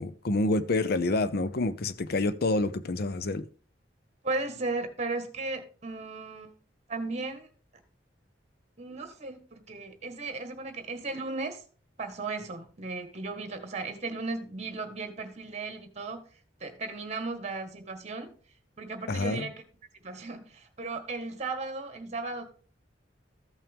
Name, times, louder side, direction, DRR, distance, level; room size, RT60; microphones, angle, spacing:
voice 1, 0.0-3.4 19.1-19.5, left 2 dB, 55° left, 0.6 m, -28 dB
voice 2, 4.2-6.5 6.9-7.5 8.8-11.6 12.0-16.3 16.6-18.4 18.8-19.6 20.0-22.4, right 3 dB, 40° right, 1.5 m, -36 dB
14.5 x 5.7 x 3.5 m
head